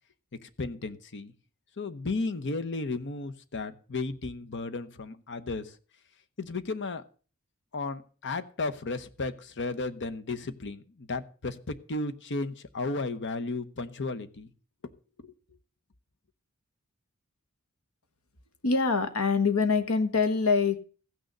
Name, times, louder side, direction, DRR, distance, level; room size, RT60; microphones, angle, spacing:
voice 1, 0.3-1.3 1.8-5.8 6.4-7.0 7.7-14.5 14.8-14.9 15.2-15.3, left 3 dB, 55° left, 11 dB, 0.9 m, -34 dB
voice 2, 18.6-20.8, left 4 dB, 70° left, 10 dB, 1.4 m, -24 dB
15.0 x 6.5 x 6.7 m, 0.39 s
head